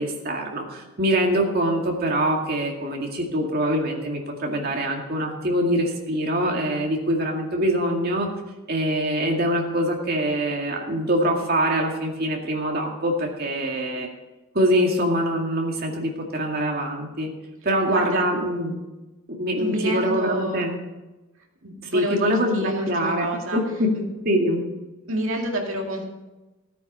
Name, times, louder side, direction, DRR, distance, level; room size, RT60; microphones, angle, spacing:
voice 1, 0.0-8.3 8.7-14.1 14.5-17.3 17.6-18.8 19.3-20.7 21.9-23.3 23.5-23.9 24.3-24.6, equal, 45° right, 1 dB, 2.1 m, -24 dB
voice 2, 17.8-18.2 19.6-20.6 21.6-23.6 23.9-24.1 25.1-26.1, right 1 dB, 60° right, 1 dB, 2.3 m, -29 dB
14.5 x 9.2 x 5.5 m, 1.1 s
head